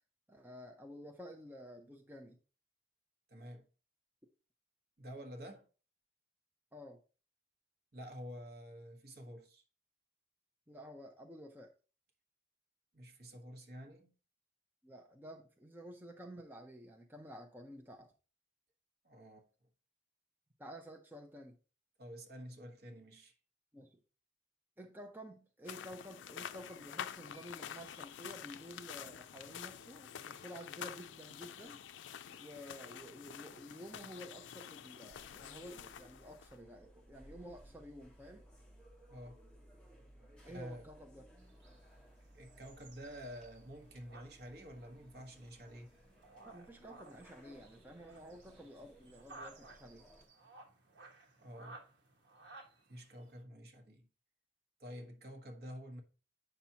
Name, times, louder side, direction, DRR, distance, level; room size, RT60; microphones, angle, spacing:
voice 1, 0.3-2.4 6.7-7.0 10.7-11.7 14.8-18.1 20.6-21.6 23.7-24.0 24.8-31.8 32.4-38.5 40.4-41.2 46.4-50.0, equal, 10° right, 0.6 m, -51 dB
voice 2, 3.3-3.7 5.0-5.7 7.9-9.6 12.9-14.1 19.0-19.5 22.0-23.3 39.1-39.4 40.4-40.9 42.3-45.9 51.4-51.8 52.9-54.1 54.8-56.0, equal, 55° right, 1.2 m, -49 dB
sound 1, 25.7-36.6, left 9 dB, 80° left, 0.4 m, -48 dB
sound 2, 35.1-50.3, equal, 5° left, 1.3 m, -61 dB
sound 3, 41.4-53.4, right 2 dB, 75° right, 1.3 m, -58 dB
7.9 x 5.8 x 2.8 m
head